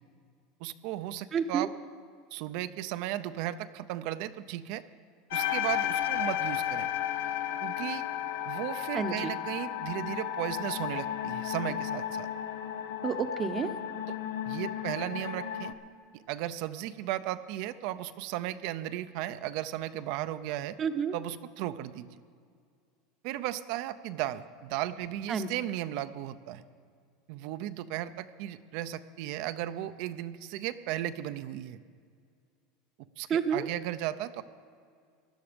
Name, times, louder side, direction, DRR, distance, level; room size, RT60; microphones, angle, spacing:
voice 1, 0.6-1.7 2.3-4.8 5.3-6.9 7.6-8.0 8.4-12.3 14.1-14.2 14.4-15.7 16.1-20.8 21.1-22.2 23.2-26.6 27.3-31.8 33.2-34.4, right 13 dB, 65° right, 11 dB, 0.6 m, -35 dB
voice 2, 1.3-1.7 8.9-9.3 13.0-13.7 20.8-21.1 25.3-25.5 33.3-33.7, right 6 dB, 30° right, 9 dB, 0.8 m, -29 dB
sound 1, 5.3-15.7, left 11 dB, 85° left, 0.8 m, -33 dB
16.5 x 11.5 x 5.2 m, 2.2 s
supercardioid pair, 130°, 0 cm